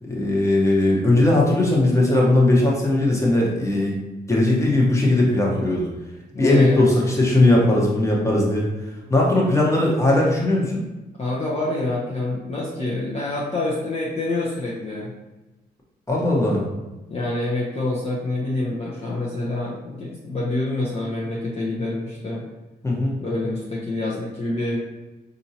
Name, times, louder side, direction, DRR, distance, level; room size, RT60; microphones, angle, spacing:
voice 1, 0.0-4.0 4.3-5.9 6.4-8.7 9.1-10.8 16.1-16.6 22.8-23.1, left 2 dB, 15° left, -3 dB, 1.1 m, -18 dB
voice 2, 6.3-7.0 11.2-15.1 17.1-22.4 23.2-24.8, left 2 dB, 35° left, -5 dB, 0.8 m, -27 dB
4.4 x 2.6 x 2.8 m, 1.1 s
cardioid pair, 80°, 17 cm